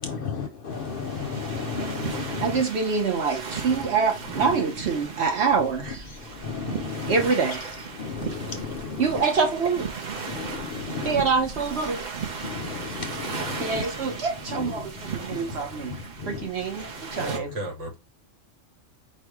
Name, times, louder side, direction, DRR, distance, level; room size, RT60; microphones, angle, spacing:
voice 1, 0.0-2.6 3.7-3.8 4.4-4.6 6.2-7.3 8.0-9.3 10.3-11.3 12.4-13.9 14.5-14.9 15.3-15.4 15.9-16.5 17.2-17.3, left 5 dB, 55° left, 0.7 m, -33 dB
sound 1, 0.7-17.4, right 5 dB, 40° right, 0.9 m, -36 dB
voice 2, 2.4-6.1 7.1-7.6 9.0-9.9 11.0-12.0 13.6-16.0 16.3-17.5, right 5 dB, 60° right, 1.2 m, -25 dB
voice 3, 17.2-18.0, right 1 dB, 75° right, 1.7 m, -33 dB
4.7 x 2.3 x 4.6 m
omnidirectional pair, 1.3 m